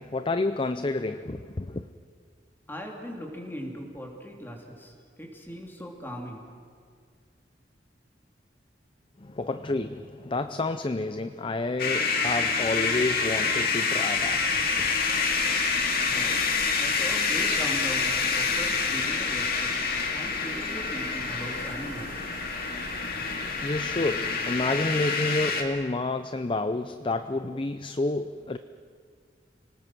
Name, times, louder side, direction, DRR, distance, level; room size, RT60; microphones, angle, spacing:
voice 1, 0.0-1.9 9.2-14.9 23.2-28.6, left 2 dB, 30° left, 0.6 m, -30 dB
voice 2, 2.7-4.9 5.2-6.5 16.1-16.4 16.8-19.7 20.1-22.1, equal, 10° left, 3.5 m, -39 dB
sound 1, 11.8-25.6, left 4 dB, 55° left, 2.3 m, -27 dB
sound 2, 14.1-25.0, right 2 dB, 80° right, 2.3 m, -44 dB
30.0 x 19.0 x 6.2 m
head